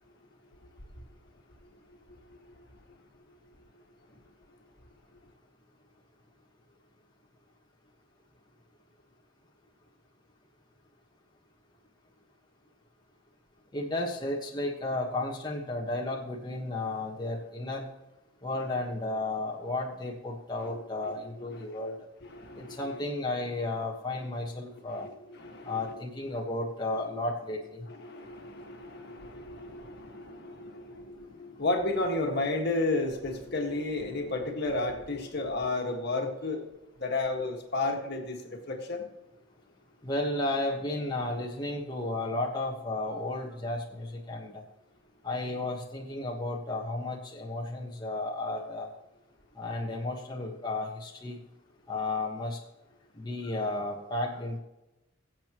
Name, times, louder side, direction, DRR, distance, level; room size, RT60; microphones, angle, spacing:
voice 1, 2.1-2.6 20.6-21.7 22.2-23.1 24.9-26.0 27.9-36.7 37.0-39.1, left 2 dB, 50° left, 2 dB, 1.8 m, -33 dB
voice 2, 13.7-17.9 18.4-21.9 22.6-25.1 25.6-27.9 40.0-44.6 45.2-48.9 49.6-51.4 51.9-52.6 53.2-54.6, left 2 dB, 20° left, -2 dB, 1.3 m, -33 dB
22.0 x 7.7 x 3.0 m, 0.99 s
head